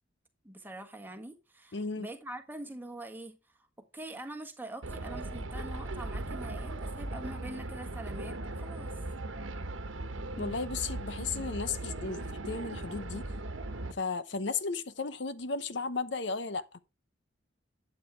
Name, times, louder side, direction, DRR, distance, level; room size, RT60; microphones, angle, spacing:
voice 1, 0.4-3.6 3.9-9.0, right 1 dB, 10° right, 1.6 m, -44 dB
voice 2, 1.7-2.1 10.4-13.3 13.9-16.7, left 4 dB, 65° left, 0.9 m, -35 dB
sound 1, 4.8-13.9, right 2 dB, 85° right, 1.2 m, -38 dB
12.5 x 8.4 x 3.4 m
head